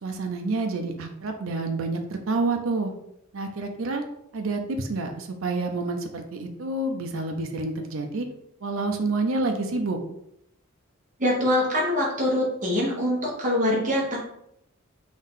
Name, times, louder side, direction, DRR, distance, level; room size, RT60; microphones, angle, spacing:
voice 1, 0.0-2.9 3.3-4.0 4.3-8.3 8.6-10.0, right 3 dB, 75° right, 4 dB, 0.5 m, -28 dB
voice 2, 11.2-14.2, left 1 dB, 35° right, -3 dB, 1.3 m, -24 dB
3.8 x 2.6 x 3.7 m, 0.77 s
head